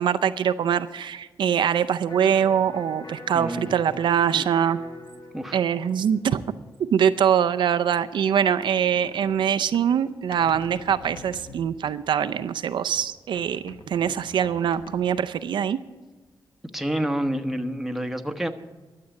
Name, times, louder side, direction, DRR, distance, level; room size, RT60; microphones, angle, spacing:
voice 1, 0.0-4.8 5.5-6.4 6.9-15.8, right 8 dB, 80° right, 11 dB, 0.5 m, -23 dB
Electric guitar, 2.1-8.1, left 2 dB, 60° left, 2.2 m, -45 dB
voice 2, 3.3-3.7 5.3-5.6 16.7-18.5, right 1 dB, 5° right, 5 dB, 1.1 m, -28 dB
sound 1, 8.4-12.6 12.9-15.3, left 3 dB, 75° left, 1.3 m, -46 dB
12.5 x 7.6 x 8.3 m, 1.2 s
cardioid pair, 70°, 8 cm